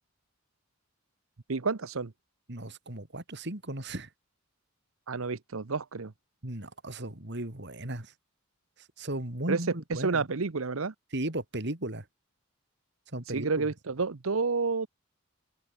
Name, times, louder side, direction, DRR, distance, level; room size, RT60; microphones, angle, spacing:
voice 1, 1.5-2.1 5.1-6.1 9.5-9.6 10.0-10.9 13.3-14.9, right 4 dB, 75° right, 0.9 m, -30 dB
voice 2, 2.5-4.1 6.4-8.1 9.0-10.2 11.1-12.0 13.1-13.7, right 1 dB, 55° right, 3.1 m, -36 dB
open air
head